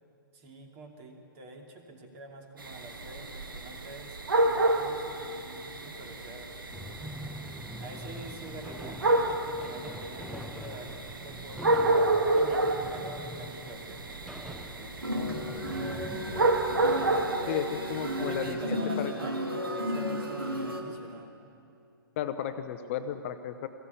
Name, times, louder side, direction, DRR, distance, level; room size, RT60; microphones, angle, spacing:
voice 1, 0.3-6.9 7.8-12.1 12.4-15.6 16.9-17.7 18.0-21.3, right 2 dB, 35° right, 3 dB, 2.7 m, -46 dB
sound 1, 2.6-18.5, right 2 dB, 70° right, 1.7 m, -30 dB
sound 2, 6.7-17.3, equal, ahead, 0.7 m, -44 dB
sound 3, 15.0-20.8, equal, 85° right, 2.4 m, -33 dB
voice 2, 17.5-19.1 22.2-23.7, left 9 dB, 35° left, 9 dB, 0.9 m, -34 dB
21.5 x 15.0 x 8.3 m, 2.6 s
figure-of-eight pair, 120°, 12 cm